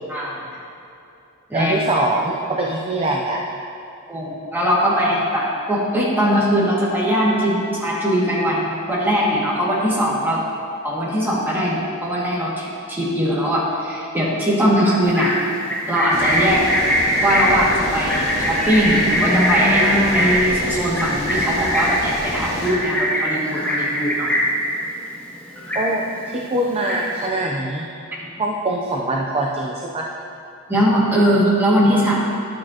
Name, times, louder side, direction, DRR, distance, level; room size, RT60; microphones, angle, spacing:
voice 1, 0.1-0.4 1.5-1.7 4.1-10.4 10.8-15.3 15.9-16.6 17.2-24.3 30.7-32.1, equal, 10° right, -7 dB, 1.9 m, -20 dB
voice 2, 1.5-3.4 25.7-27.9 28.4-30.1, right 2 dB, 25° right, -1 dB, 0.5 m, -23 dB
Livestock farm animals working animals, 15.0-24.6 25.0-25.3 25.5-26.2 26.6-27.3, equal, 5° left, 1.9 m, -21 dB
sound 1, 16.1-22.7, equal, 70° right, 2.2 m, -29 dB
11.5 x 8.4 x 2.8 m, 2.7 s
head